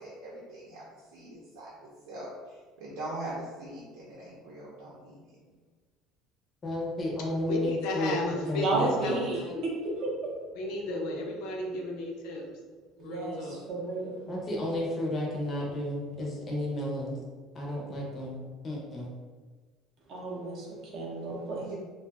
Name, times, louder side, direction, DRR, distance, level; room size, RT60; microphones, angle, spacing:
voice 1, 0.0-5.4 21.6-21.8, right 1 dB, 85° right, -6 dB, 0.7 m, -42 dB
voice 2, 6.6-8.1 8.5-9.1 14.3-17.2 17.5-18.4 18.6-19.1, left 1 dB, 20° left, -3 dB, 0.6 m, -32 dB
voice 3, 7.5-9.6 10.5-12.4 13.0-13.7, left 2 dB, 65° left, 1 dB, 0.5 m, -34 dB
voice 4, 8.6-10.1 13.0-14.2 20.1-21.8, right 2 dB, 40° right, -3 dB, 0.6 m, -32 dB
2.5 x 2.3 x 3.3 m, 1.4 s
cardioid pair, 180°, 0 cm